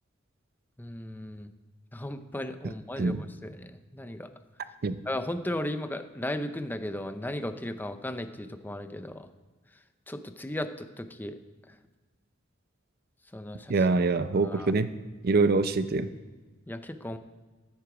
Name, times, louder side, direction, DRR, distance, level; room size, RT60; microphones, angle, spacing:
voice 1, 0.8-1.5 1.9-4.3 5.1-9.3 10.1-11.4 13.3-13.7 14.4-14.7 16.7-17.2, left 1 dB, 10° left, 9 dB, 0.5 m, -36 dB
voice 2, 13.7-14.9 15.2-16.1, right 3 dB, 50° right, 13 dB, 0.5 m, -24 dB
14.0 x 8.0 x 4.9 m, 1.3 s
head